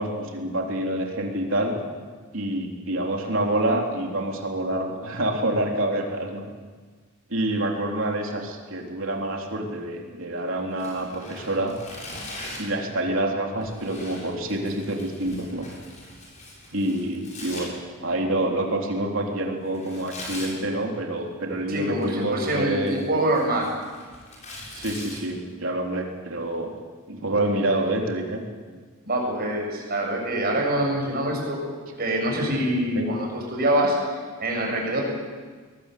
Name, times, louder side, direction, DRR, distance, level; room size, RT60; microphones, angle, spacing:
voice 1, 0.0-1.8 2.3-6.5 7.3-11.7 12.6-15.7 16.7-23.0 24.7-26.7 27.1-28.4 33.0-33.1, right 1 dB, 60° right, 1 dB, 3.7 m, -27 dB
Tearing, 10.7-12.8 13.6-17.6 19.7-20.5 21.8-22.3 22.7-25.2, left 2 dB, 35° left, 6.9 m, -41 dB
voice 2, 21.7-23.8 29.0-31.6 32.0-35.0, right 1 dB, 45° right, -1 dB, 7.8 m, -25 dB
22.0 x 21.0 x 8.5 m, 1.5 s
head